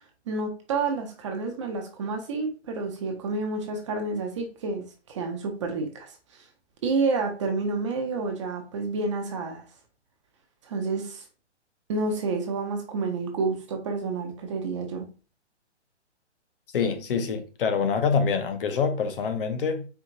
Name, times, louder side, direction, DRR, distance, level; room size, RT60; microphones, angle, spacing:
voice 1, 0.3-6.4 6.8-9.6 10.7-11.2 11.9-15.1, right 3 dB, 25° right, 0.6 m, -29 dB
voice 2, 16.7-19.9, left 5 dB, 50° left, 0.7 m, -25 dB
4.6 x 2.8 x 2.5 m
hypercardioid pair, 150°, 35 cm